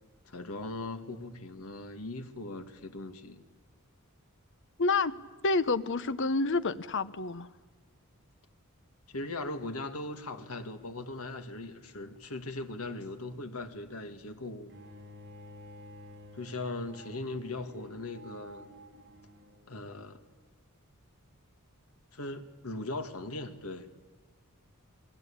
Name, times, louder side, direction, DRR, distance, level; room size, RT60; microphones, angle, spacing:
voice 1, 0.2-3.5 9.1-14.8 16.3-18.7 19.7-20.2 22.1-23.9, left 2 dB, 75° left, 2.2 m, -39 dB
voice 2, 4.8-5.2 5.4-7.5, left 3 dB, 55° left, 1.0 m, -28 dB
Bowed string instrument, 14.7-19.7, equal, 55° right, 4.8 m, -51 dB
29.0 x 22.0 x 8.7 m
head